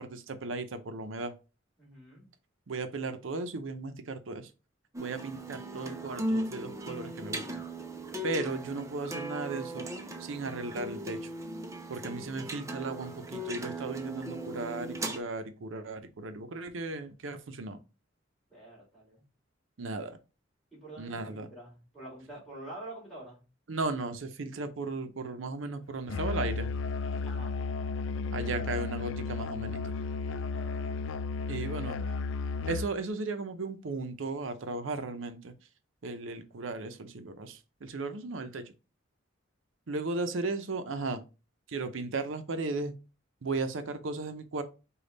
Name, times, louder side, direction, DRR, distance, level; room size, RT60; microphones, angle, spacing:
voice 1, 0.0-1.3 2.7-4.5 5.0-7.5 8.2-9.9 10.2-11.2 11.9-17.8 19.8-20.2 21.0-21.5 23.7-26.7 28.3-29.9 31.5-32.0 32.7-35.5 36.0-38.6 39.9-41.2 41.7-42.9 43.4-44.6, right 3 dB, 85° right, 0.6 m, -36 dB
voice 2, 1.8-2.3 18.5-19.2 20.7-23.4 27.3-27.6 30.5-31.1, right 1 dB, ahead, 2.7 m, -47 dB
sound 1, 4.9-15.2, right 1 dB, 15° right, 0.6 m, -37 dB
Musical instrument, 26.1-33.0, left 4 dB, 80° left, 0.4 m, -33 dB
5.1 x 2.3 x 3.9 m
head